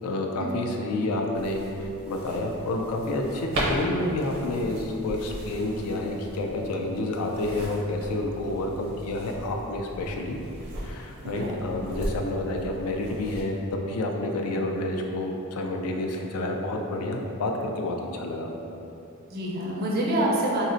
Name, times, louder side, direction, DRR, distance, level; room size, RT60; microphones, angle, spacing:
voice 1, 0.0-10.4 10.8-18.5, left 1 dB, 80° left, 2 dB, 0.4 m, -29 dB
sound 1, 1.3-13.4, right 1 dB, 85° right, 0.8 m, -37 dB
voice 2, 11.2-11.6 14.5-14.7 19.3-20.6, right 1 dB, 45° right, -3 dB, 0.4 m, -27 dB
3.9 x 2.0 x 2.5 m, 2.8 s
head